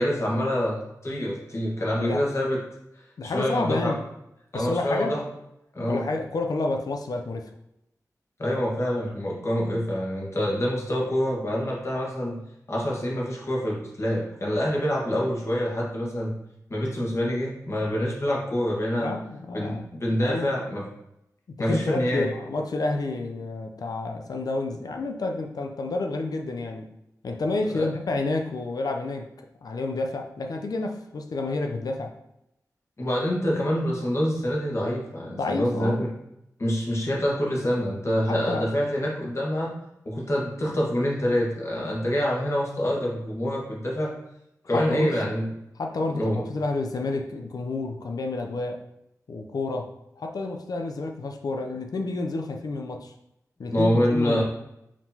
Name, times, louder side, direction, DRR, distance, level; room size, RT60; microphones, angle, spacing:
voice 1, 0.0-2.6 3.2-3.9 4.5-5.2 5.7-6.1 8.4-12.4 12.7-16.3 16.7-19.1 19.5-20.8 21.6-22.3 27.7-27.9 33.0-36.1 36.6-39.7 40.0-44.1 44.6-45.5 46.1-46.4 53.7-54.4, equal, 45° left, -3 dB, 1.5 m, -26 dB
voice 2, 1.9-2.2 3.2-4.0 4.5-5.1 5.9-7.5 19.0-19.8 20.2-20.5 21.5-26.9 27.2-29.3 29.6-32.1 35.3-36.1 38.0-38.7 44.7-45.2 45.8-48.8 49.3-53.1 53.6-54.4, left 3 dB, 75° left, 3 dB, 0.5 m, -30 dB
4.8 x 3.7 x 2.8 m, 0.84 s
cardioid pair, 55°, 7 cm